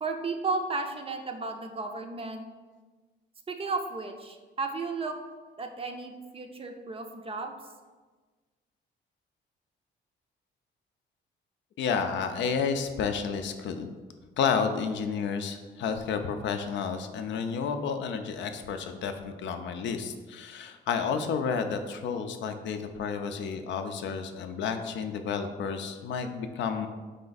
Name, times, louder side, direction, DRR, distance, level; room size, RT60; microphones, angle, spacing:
voice 1, 0.0-2.4 3.5-5.2 5.6-7.5, right 3 dB, 30° right, 5 dB, 0.5 m, -34 dB
voice 2, 11.8-13.9 14.4-26.9, left 6 dB, 70° left, 7 dB, 0.4 m, -31 dB
4.9 x 2.5 x 3.9 m, 1.4 s
cardioid pair, 90°, 20 cm